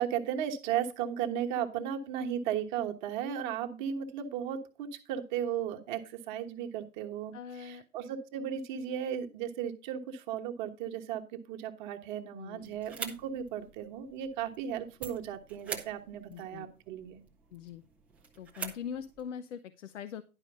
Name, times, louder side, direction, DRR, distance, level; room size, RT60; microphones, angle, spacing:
voice 1, 0.0-17.2, right 9 dB, 30° right, 4 dB, 1.3 m, -35 dB
voice 2, 7.3-7.8 12.4-12.8 16.3-16.7 17.5-17.8 18.4-20.2, left 8 dB, 55° left, 12 dB, 0.7 m, -42 dB
sound 1, 12.6-19.3, right 5 dB, 5° right, 0.5 m, -46 dB
11.0 x 5.0 x 5.3 m, 0.32 s
hypercardioid pair, 130°, 45 cm